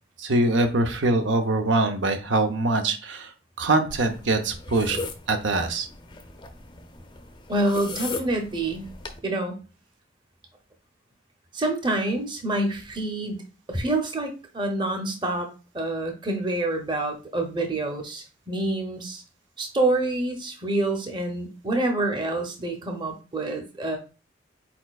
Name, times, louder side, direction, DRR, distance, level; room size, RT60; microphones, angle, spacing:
voice 1, 0.2-3.3 3.6-5.0 5.3-5.9, right 2 dB, 85° right, 6 dB, 0.7 m, -23 dB
sound 1, 3.9-9.2, left 3 dB, 25° left, 0.4 m, -38 dB
voice 2, 7.5-8.8 9.2-9.6 11.5-13.4 13.7-15.5 15.7-19.2 19.6-24.0, right 2 dB, 25° right, 3 dB, 0.7 m, -27 dB
4.3 x 4.3 x 2.4 m, 0.34 s
head